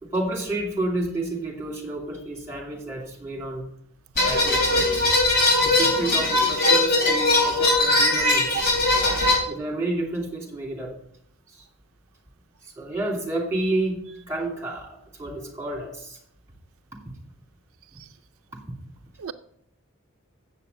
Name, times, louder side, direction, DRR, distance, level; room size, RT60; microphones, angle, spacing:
voice 1, 0.0-3.7 4.2-5.1 5.6-8.7 9.5-10.9 11.5-11.6 12.8-16.2 18.7-18.8, right 2 dB, 15° right, -1 dB, 2.6 m, -30 dB
sound 1, 4.2-9.3, left 2 dB, 45° left, 4.0 m, -20 dB
voice 2, 9.0-9.5 19.2-19.3, right 8 dB, 80° right, 8 dB, 0.4 m, -32 dB
7.7 x 6.6 x 8.0 m, 0.72 s
head